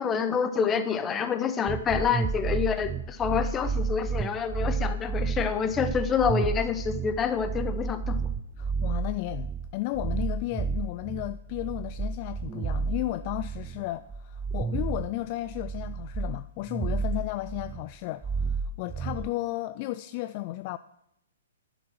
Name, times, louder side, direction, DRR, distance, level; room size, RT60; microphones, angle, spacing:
voice 1, 0.0-8.2, left 6 dB, 20° left, 0.9 m, -27 dB
sound 1, 1.7-17.9 18.2-19.3, right 5 dB, 15° right, 0.5 m, -31 dB
voice 2, 8.6-20.8, left 17 dB, 40° left, 0.3 m, -34 dB
10.5 x 7.0 x 6.3 m
figure-of-eight pair, 120°, 0 cm